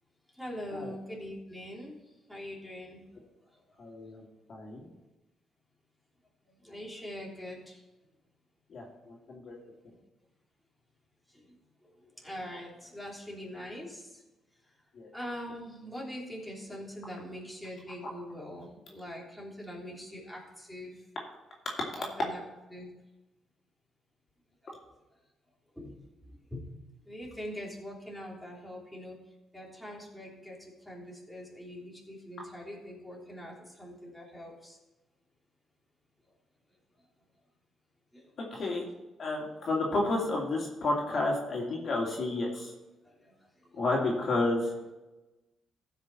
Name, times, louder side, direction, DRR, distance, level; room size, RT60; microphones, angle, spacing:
voice 1, 0.4-2.0 2.3-3.1 6.6-7.8 11.3-11.4 11.8-14.1 15.1-20.9 22.0-22.4 22.7-22.9 24.6-24.7 25.7-25.9 26.2-26.8 27.1-29.1 29.5-30.6 30.8-34.8 38.1-38.2 43.2-43.3, equal, ahead, -5 dB, 3.4 m, -43 dB
voice 2, 3.8-4.2 4.5-4.9 8.7-9.5 14.9-15.1 38.5-38.8 39.2-42.7 43.7-44.7, left 2 dB, 50° left, -2 dB, 2.6 m, -31 dB
15.0 x 5.9 x 4.2 m, 1.1 s
cardioid pair, 90°, 0 cm